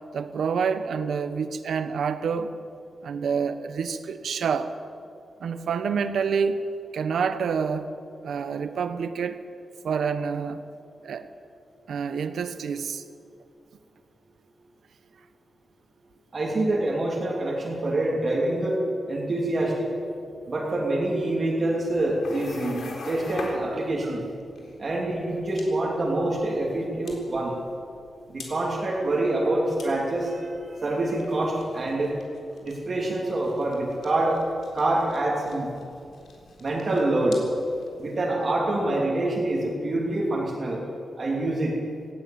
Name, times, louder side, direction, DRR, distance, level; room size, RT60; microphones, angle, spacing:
voice 1, 0.1-2.5 3.0-4.7 5.4-6.6 6.9-9.4 9.8-10.7 11.0-11.3 11.9-13.0 23.7-23.8, right 6 dB, 75° right, 10 dB, 1.1 m, -28 dB
voice 2, 16.3-18.8 19.1-19.9 20.5-24.2 24.8-27.6 28.3-32.4 32.6-34.4 34.7-35.7 36.6-37.4 38.0-40.8 41.2-41.8, right 2 dB, 35° right, -3 dB, 3.0 m, -26 dB
sound 1, 21.9-38.1, left 3 dB, 80° left, 4.0 m, -44 dB
18.0 x 17.0 x 8.7 m, 2.5 s
wide cardioid pair, 170°, 0 cm